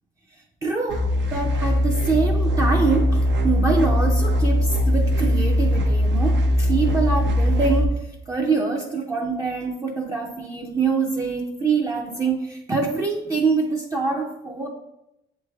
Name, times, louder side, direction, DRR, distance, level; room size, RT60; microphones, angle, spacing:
voice 1, 0.6-8.0 8.3-14.7, right 4 dB, 15° right, -1 dB, 0.5 m, -25 dB
sound 1, 0.9-7.8, equal, 70° right, 0.7 m, -20 dB
7.2 x 3.2 x 2.3 m, 0.86 s
cardioid pair, 90°, 20 cm